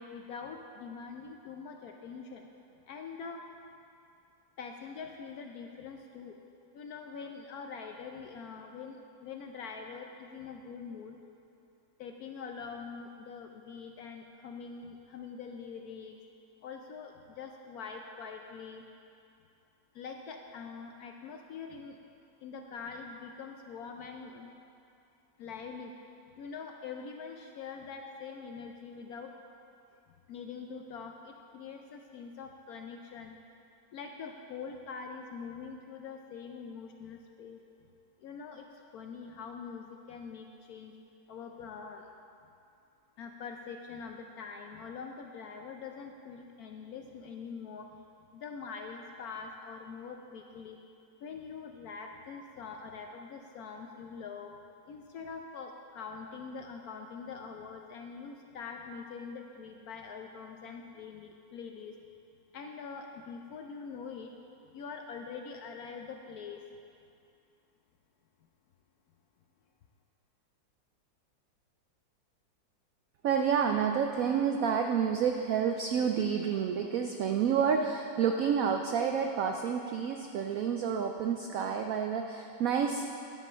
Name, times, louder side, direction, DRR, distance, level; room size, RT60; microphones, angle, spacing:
voice 1, 0.0-2.5 2.9-3.4 4.6-6.4 6.7-11.2 12.0-16.2 16.6-18.8 19.9-22.0 22.4-24.5 25.4-25.9 26.4-29.3 30.3-33.4 33.9-37.6 38.2-40.9 41.3-42.1 43.2-47.9 48.3-50.8 51.2-54.5 54.9-62.0 62.5-64.3 64.7-66.6, left 5 dB, 70° left, 3 dB, 0.9 m, -44 dB
voice 2, 73.2-83.1, right 7 dB, 85° right, 4 dB, 0.7 m, -29 dB
11.5 x 5.4 x 6.2 m, 2.5 s
omnidirectional pair, 2.0 m